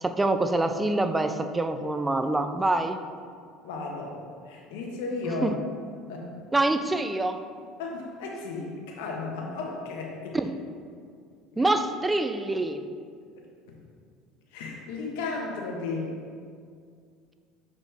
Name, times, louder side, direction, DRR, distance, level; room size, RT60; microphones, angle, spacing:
voice 1, 0.0-3.0 5.3-5.6 6.5-7.4 10.3-10.6 11.6-12.8, right 2 dB, 10° right, 8 dB, 0.3 m, -25 dB
voice 2, 3.6-4.1 4.5-5.5 6.1-6.3 7.8-10.4 11.5-11.7 13.7-13.8 14.5-16.1, left 3 dB, 85° left, -1 dB, 1.1 m, -34 dB
7.2 x 4.1 x 3.4 m, 2.2 s
cardioid pair, 130°, 0 cm